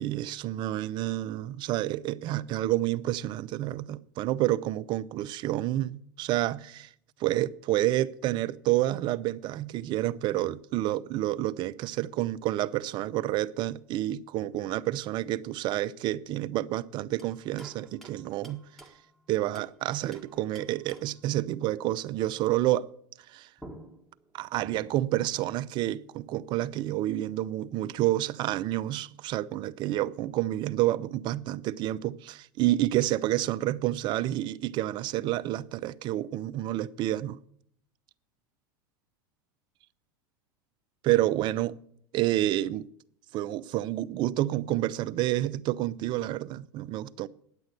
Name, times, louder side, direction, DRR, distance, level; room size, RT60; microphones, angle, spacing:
voice 1, 0.0-6.9 7.2-18.6 19.3-22.9 23.3-23.5 24.3-37.4 41.0-41.8 42.1-42.9 43.3-47.3, right 14 dB, 45° right, 0.5 m, -29 dB
sound 1, 17.2-19.8 20.1-21.3 23.2-23.3 23.6-25.2, right 1 dB, 5° left, 1.6 m, -50 dB
9.9 x 8.2 x 8.1 m
hypercardioid pair, 100°, 11 cm